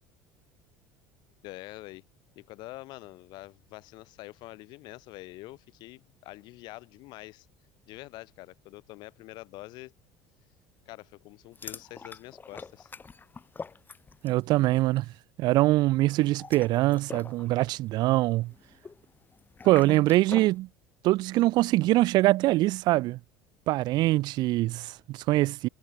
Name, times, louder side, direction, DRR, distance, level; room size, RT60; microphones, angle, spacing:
voice 1, 1.4-2.0 2.3-7.5 7.9-9.9 10.8-12.9, left 19 dB, 65° left, 6.8 m, -45 dB
sound 1, 11.5-14.5 14.7-15.0 16.2-20.6, left 4 dB, 25° left, 2.8 m, -45 dB
voice 2, 14.2-15.0 15.4-18.5 19.6-20.7 21.0-23.2 23.7-25.7, right 18 dB, 60° right, 0.8 m, -23 dB
supercardioid pair, 85°, 8 cm